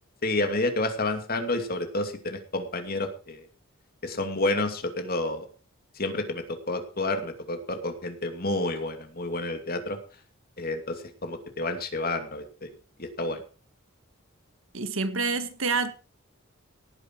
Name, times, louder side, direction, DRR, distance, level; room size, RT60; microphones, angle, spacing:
voice 1, 0.2-3.4 4.0-5.4 6.0-10.0 10.6-12.7 13.0-13.4, left 2 dB, 45° left, 2.6 m, -30 dB
voice 2, 14.7-15.9, right 4 dB, 65° right, 1.8 m, -27 dB
18.0 x 10.0 x 4.6 m
head